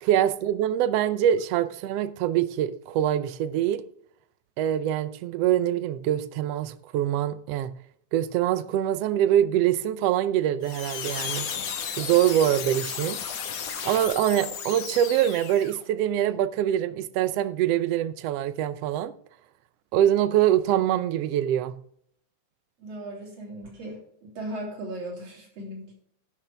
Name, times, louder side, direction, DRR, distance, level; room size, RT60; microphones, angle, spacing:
voice 1, 0.0-3.8 4.6-7.7 8.1-11.5 12.0-13.2 13.8-19.1 19.9-21.8, right 11 dB, 80° right, 1.5 m, -24 dB
sound 1, 10.6-15.8, left 7 dB, 90° left, 3.0 m, -34 dB
voice 2, 22.8-25.9, right 1 dB, 55° right, 4.3 m, -37 dB
15.5 x 6.0 x 3.4 m
omnidirectional pair, 3.5 m